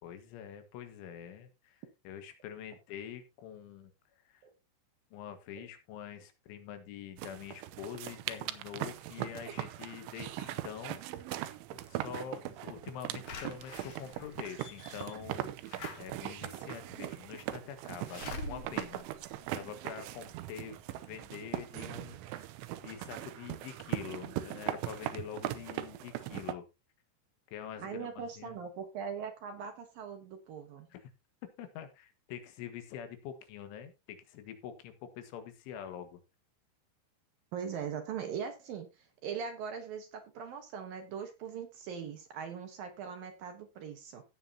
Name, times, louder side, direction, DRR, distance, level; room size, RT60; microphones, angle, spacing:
voice 1, 0.0-3.9 4.3-4.4 5.1-11.0 11.7-15.5 16.0-19.1 19.5-20.8 21.1-22.5 22.8-26.7 27.5-28.6 30.9-31.1 31.6-36.2, left 9 dB, 85° left, 4.0 m, -45 dB
sound 1, 7.2-26.5, right 14 dB, 85° right, 3.2 m, -40 dB
Slam / Alarm, 13.3-20.1 20.6-20.7 20.9-21.0, left 4 dB, 55° left, 2.2 m, -47 dB
voice 2, 27.8-30.9 37.5-44.2, right 7 dB, 65° right, 2.5 m, -41 dB
17.0 x 7.7 x 2.8 m
omnidirectional pair, 5.4 m